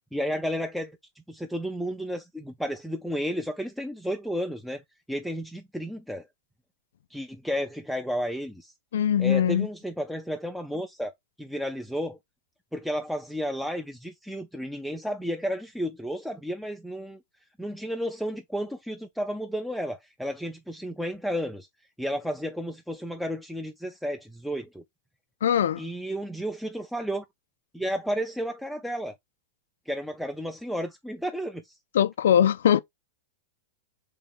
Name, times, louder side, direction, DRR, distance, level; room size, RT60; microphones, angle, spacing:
voice 1, 0.1-1.0 1.3-4.8 5.1-6.3 7.1-8.7 9.2-12.2 12.7-17.2 17.6-21.7 22.0-24.8 25.8-27.2 27.7-29.2 29.9-31.8, equal, ahead, 0.5 m, -32 dB
voice 2, 8.9-9.7 25.4-25.8 31.9-32.8, left 9 dB, 75° left, 0.3 m, -21 dB
3.4 x 2.9 x 3.5 m
hypercardioid pair, 105°, 0 cm